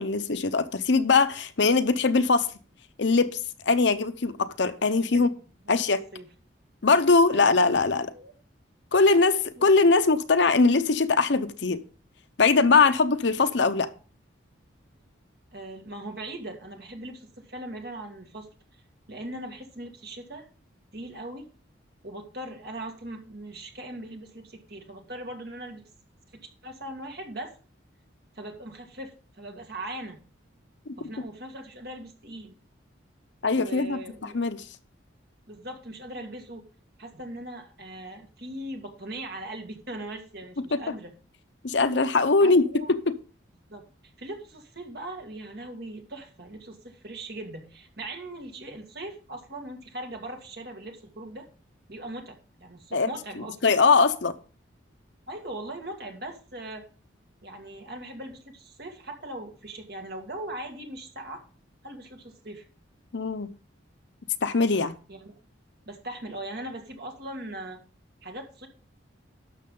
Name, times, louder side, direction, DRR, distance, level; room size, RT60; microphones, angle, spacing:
voice 1, 0.0-2.5 3.0-5.3 5.7-6.0 6.8-8.1 8.9-11.8 12.4-13.9 30.9-31.0 33.4-34.0 34.3-34.6 40.7-40.8 41.6-42.6 42.9-43.1 52.9-53.1 53.6-54.3 63.1-63.5 64.4-64.9, left 4 dB, 65° left, 0.8 m, -21 dB
voice 2, 4.9-5.3 5.6-5.9 6.1-6.3 7.3-7.5 8.1-8.3 9.6-9.7 12.7-13.0 15.5-18.5 19.1-20.5 20.9-21.5 22.0-25.8 26.3-27.5 28.4-30.2 31.0-32.5 33.5-34.4 35.5-36.6 37.0-41.1 42.4-42.9 43.7-43.8 44.2-51.5 51.9-53.6 55.3-56.9 57.4-61.4 61.8-62.6 65.1-65.3 65.9-67.8 68.2-68.7, right 1 dB, 50° right, 2.1 m, -40 dB
12.0 x 6.8 x 3.8 m
head